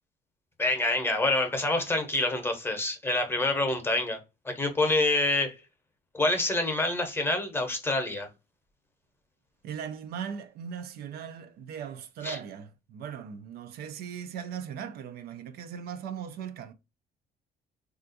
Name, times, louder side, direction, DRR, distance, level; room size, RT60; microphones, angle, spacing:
voice 1, 0.6-4.2 4.4-5.6 6.1-8.3 12.2-12.4, left 2 dB, 15° left, 0.8 m, -27 dB
voice 2, 9.6-16.7, right 8 dB, 65° right, 0.4 m, -39 dB
3.4 x 2.4 x 2.6 m
cardioid pair, 110°, 17 cm